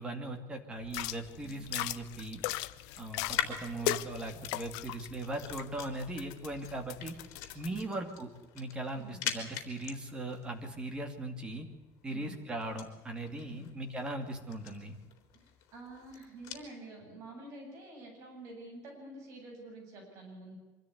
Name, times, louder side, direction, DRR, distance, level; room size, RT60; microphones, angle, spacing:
voice 1, 0.0-2.4 3.0-7.2 7.5-8.3 8.5-11.7 12.0-15.0, right 2 dB, 15° right, 5 dB, 2.6 m, -39 dB
sound 1, 0.8-7.8, left 15 dB, 80° left, 0.8 m, -39 dB
sound 2, 0.9-16.7, left 10 dB, 55° left, 3.7 m, -45 dB
voice 2, 15.3-20.6, right 2 dB, 45° right, 1 dB, 7.8 m, -48 dB
25.0 x 13.5 x 9.5 m, 1.2 s
cardioid pair, 180°, 7 cm